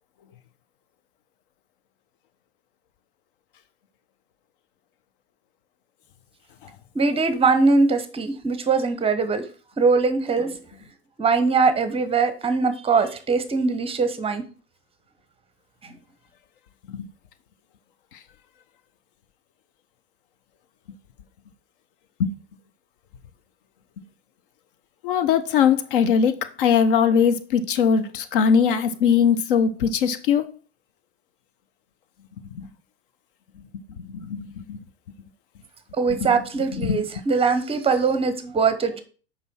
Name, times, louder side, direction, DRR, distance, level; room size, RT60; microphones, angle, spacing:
voice 1, 7.0-9.4 9.8-10.5 11.2-14.4 36.0-39.0, right 4 dB, 15° right, 1.0 m, -21 dB
voice 2, 25.0-30.4 34.2-34.8 36.1-36.3 36.7-37.0, left 7 dB, 55° left, 0.9 m, -20 dB
8.1 x 5.4 x 4.3 m
figure-of-eight pair, 85°, 32 cm